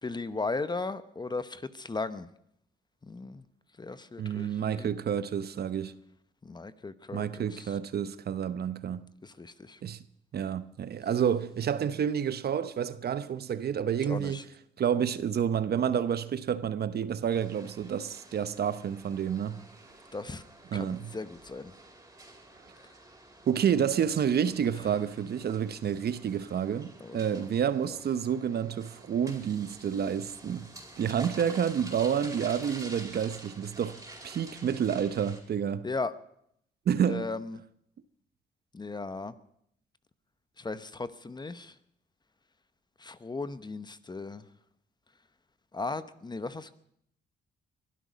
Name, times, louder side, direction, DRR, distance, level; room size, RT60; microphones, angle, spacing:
voice 1, 0.0-2.3 3.0-3.4 3.8-4.9 6.4-7.8 9.2-9.8 14.0-14.4 20.1-20.4 20.7-21.7 27.0-27.4 27.9-28.0 35.8-36.1 37.1-37.6 38.7-39.4 40.6-41.7 43.0-44.4 45.7-46.7, left 3 dB, 20° left, 0.9 m, -37 dB
voice 2, 4.2-5.9 7.1-9.1 9.8-10.0 10.3-14.4 14.8-19.6 20.7-21.1 23.5-30.7 31.0-35.9 36.9-37.3, right 8 dB, 55° right, 0.9 m, -29 dB
sound 1, 17.3-35.4, right 2 dB, 15° right, 4.5 m, -49 dB
22.5 x 12.0 x 5.2 m
cardioid pair, 90°, 20 cm